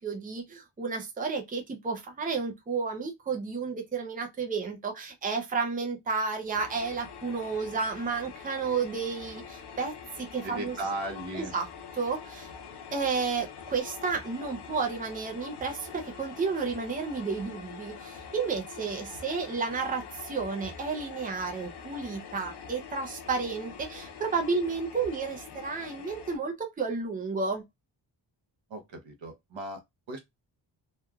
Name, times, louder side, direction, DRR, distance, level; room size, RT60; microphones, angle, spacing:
voice 1, 0.0-10.7 11.3-11.7 11.9-12.5 12.9-27.6, right 4 dB, 20° right, 0.5 m, -32 dB
sound 1, 6.5-26.4, left 6 dB, 65° left, 0.6 m, -45 dB
voice 2, 10.4-11.5 28.7-30.2, right 1 dB, 85° right, 0.9 m, -37 dB
3.0 x 2.3 x 2.3 m
wide cardioid pair, 165°, 44 cm